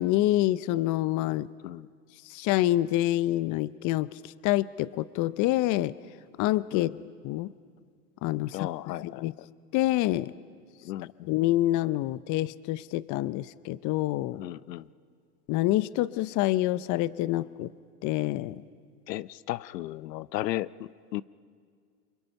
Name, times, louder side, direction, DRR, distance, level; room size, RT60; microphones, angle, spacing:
voice 1, 0.0-1.5 2.2-5.9 6.4-6.9 7.2-7.5 8.2-8.7 9.0-9.3 9.7-10.3 11.3-14.4 15.5-17.7 18.0-18.6, left 15 dB, 40° left, 18 dB, 0.6 m, -27 dB
voice 2, 8.5-9.3 10.8-11.3 14.3-14.9 19.1-21.2, left 15 dB, 85° left, 19 dB, 0.7 m, -35 dB
27.5 x 24.5 x 5.8 m, 2.1 s
hypercardioid pair, 105°, 48 cm